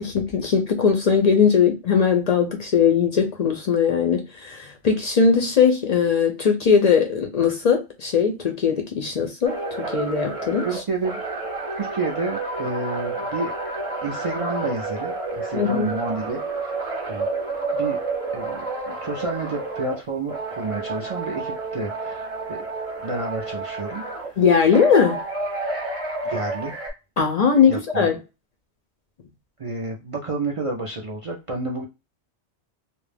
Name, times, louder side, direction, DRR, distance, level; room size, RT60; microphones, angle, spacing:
voice 1, 0.0-9.5 9.9-10.7 15.5-15.9 24.4-25.2 27.2-28.2, left 6 dB, 55° left, 0.4 m, -19 dB
sound 1, 9.4-20.0 20.3-24.3 24.7-26.9, right 3 dB, 35° right, 0.8 m, -30 dB
voice 2, 10.6-11.2 11.8-13.5 14.0-16.7 17.1-17.3 17.7-18.0 18.3-22.6 23.0-24.4 26.2-26.7 27.7-28.1 29.6-31.9, right 3 dB, 60° right, 0.3 m, -30 dB
2.3 x 2.1 x 3.2 m
omnidirectional pair, 1.2 m